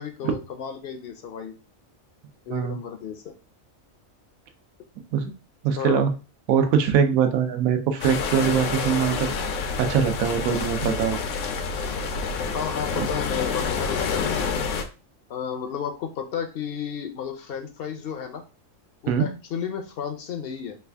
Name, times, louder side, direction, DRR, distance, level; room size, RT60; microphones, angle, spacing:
voice 1, 0.0-1.5 2.5-3.3 5.8-6.1 12.5-14.6 15.3-18.4 19.0-20.8, left 7 dB, 65° left, 5 dB, 0.6 m, -33 dB
voice 2, 5.6-6.1 6.5-9.3 9.8-11.2 13.0-13.1 19.1-19.3, right 7 dB, 85° right, 7 dB, 1.1 m, -22 dB
sound 1, 8.0-14.8, left 5 dB, 90° left, 1.0 m, -28 dB
3.3 x 2.4 x 3.3 m, 0.32 s
omnidirectional pair, 1.4 m